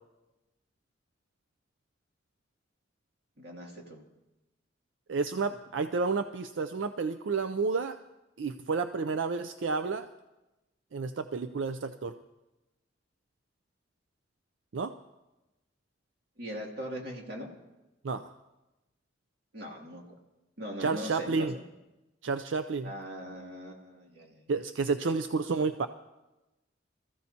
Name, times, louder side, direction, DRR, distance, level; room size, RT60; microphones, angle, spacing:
voice 1, 3.4-4.0 16.4-17.5 19.5-20.1 20.6-21.6 22.8-24.4, equal, 55° right, -1 dB, 2.5 m, -41 dB
voice 2, 5.1-8.0 8.4-10.1 10.9-12.1 14.7-14.9 18.0-18.2 20.8-21.5 22.2-22.9 24.5-25.9, right 4 dB, 85° right, 9 dB, 0.5 m, -30 dB
25.0 x 14.5 x 2.8 m, 1.0 s
head